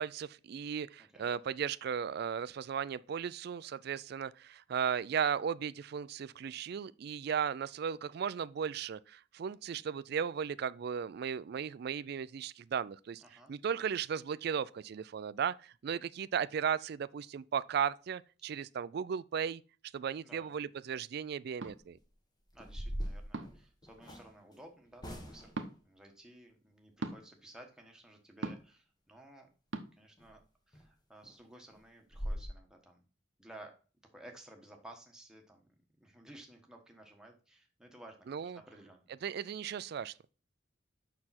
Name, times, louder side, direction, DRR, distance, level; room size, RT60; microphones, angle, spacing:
voice 1, 0.0-13.2 13.5-19.6 19.9-22.0 38.3-38.6 39.2-40.1, right 7 dB, 55° right, 0.3 m, -36 dB
voice 2, 1.0-1.3 13.2-13.5 20.2-20.5 22.5-29.5 29.9-33.0 33.4-33.8 34.1-39.1, right 1 dB, 5° right, 1.3 m, -55 dB
sound 1, 21.6-21.8 23.3-23.7 25.5-25.7 27.0-27.2 28.4-28.7 29.7-29.9, right 2 dB, 75° right, 0.8 m, -39 dB
sound 2, 21.8-22.0 22.5-24.3 25.0-25.6 30.2-30.3 30.7-30.8 31.2-31.3 31.7-31.8 32.1-32.5, equal, 20° left, 1.1 m, -41 dB
6.7 x 5.8 x 4.2 m
head